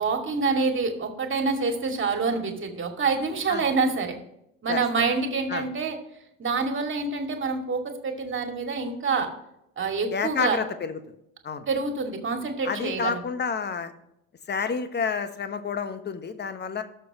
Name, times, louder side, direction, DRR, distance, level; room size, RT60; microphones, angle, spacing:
voice 1, 0.0-4.2 4.6-6.0 6.4-9.3 9.8-10.6 11.7-13.1, right 4 dB, 30° right, 4 dB, 2.4 m, -26 dB
voice 2, 10.1-11.0 11.4-11.7 12.6-13.9 14.5-16.8, left 5 dB, 25° left, 11 dB, 1.2 m, -29 dB
19.5 x 6.9 x 3.0 m, 0.81 s
figure-of-eight pair, 65°, 41 cm